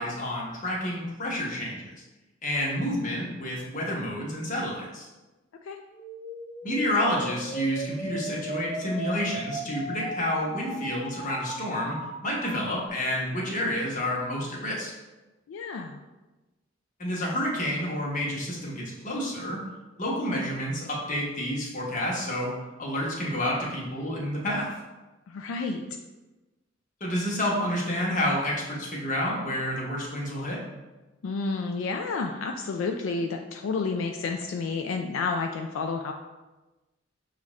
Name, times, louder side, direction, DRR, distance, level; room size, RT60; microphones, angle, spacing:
voice 1, 0.0-1.9 2.4-5.1 6.6-14.9 17.0-19.6 20.0-22.5 22.8-24.7 27.0-30.6, equal, 40° left, -3 dB, 1.1 m, -29 dB
sound 1, 5.9-12.9, right 1 dB, 10° right, 0.9 m, -37 dB
voice 2, 15.5-16.0 25.3-25.8 31.2-36.1, left 4 dB, 80° left, 3 dB, 0.3 m, -30 dB
6.9 x 2.5 x 3.1 m, 1.1 s
head